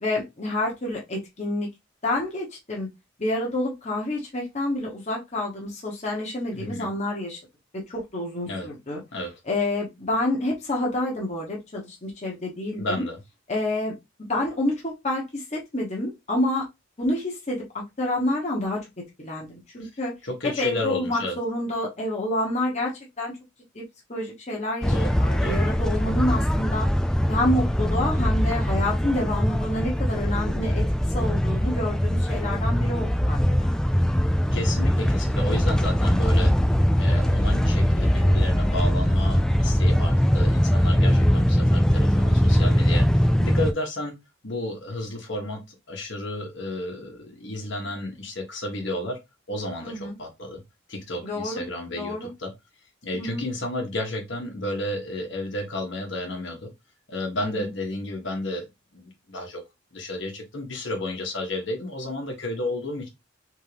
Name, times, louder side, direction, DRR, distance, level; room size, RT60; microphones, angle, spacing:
voice 1, 0.0-1.7 2.0-2.9 3.2-7.4 7.7-9.0 9.5-13.1 13.5-13.9 14.3-16.7 17.0-18.8 19.2-20.1 20.4-23.3 23.7-23.8 24.1-24.9 25.2-26.9 27.3-30.8 31.1-33.7 49.8-50.2 51.2-51.6 52.0-52.3 53.2-53.4 57.4-57.6, left 1 dB, 35° left, 1.1 m, -28 dB
voice 2, 6.5-6.9 8.5-8.7 9.1-9.3 12.8-13.2 19.8-19.9 20.2-21.4 24.8-25.6 34.5-36.5 37.0-44.1 44.4-49.2 49.5-50.6 50.9-52.5 53.0-56.7 57.1-58.7 58.9-59.6 59.9-63.1, left 1 dB, 65° left, 1.4 m, -32 dB
sound 1, 24.8-43.7, equal, 5° left, 0.3 m, -21 dB
3.7 x 3.7 x 3.3 m
head